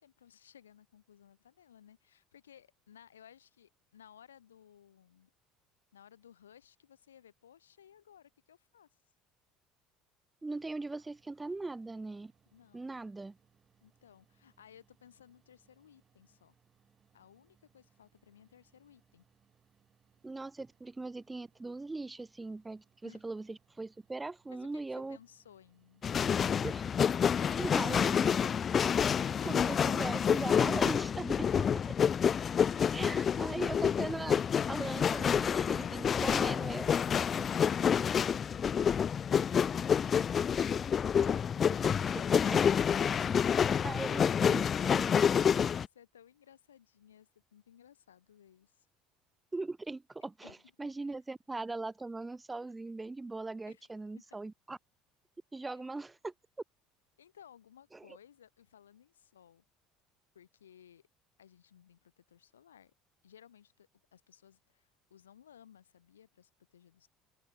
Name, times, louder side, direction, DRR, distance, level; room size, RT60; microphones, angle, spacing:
voice 1, 0.0-5.3 5.9-8.9 12.5-13.0 13.8-16.6 17.1-19.2 23.0-23.2 24.5-26.1 45.7-48.9 50.4-51.1 53.7-53.9 54.2-54.3 55.7-55.8 57.2-59.6 60.3-61.0 61.4-62.9 63.2-67.1, left 9 dB, 80° left, 6.1 m, -59 dB
voice 2, 10.4-12.3 12.7-13.4 20.2-25.2 26.5-26.8 27.5-28.2 29.4-31.5 31.7-31.8 32.9-34.4 34.7-37.0 41.7-41.9 42.5-42.6 43.8-45.3 49.5-54.8 55.5-56.3 57.9-58.0, right 3 dB, 15° right, 1.3 m, -40 dB
sound 1, 10.5-29.5, right 7 dB, 35° right, 7.4 m, -71 dB
sound 2, 26.0-45.9, left 7 dB, 35° left, 0.3 m, -28 dB
open air
figure-of-eight pair, 65°, 0 cm